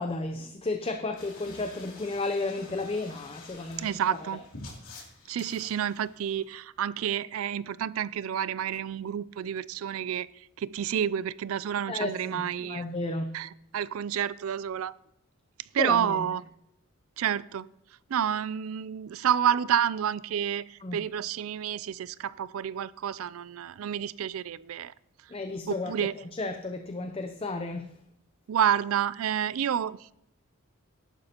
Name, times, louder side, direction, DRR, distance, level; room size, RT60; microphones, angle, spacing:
voice 1, 0.0-4.0 11.9-13.4 15.8-16.2 20.8-21.0 25.3-26.1 26.4-27.9, left 2 dB, 25° left, 6 dB, 0.6 m, -33 dB
sound 1, 1.2-6.4, left 3 dB, 90° left, 2.9 m, -48 dB
voice 2, 3.8-4.4 5.3-10.3 10.6-12.9 13.3-14.9 15.7-16.4 17.2-17.7 18.1-24.9 25.7-26.1 28.5-30.1, right 9 dB, 85° right, 19 dB, 0.4 m, -29 dB
13.5 x 11.5 x 2.9 m, 0.77 s
head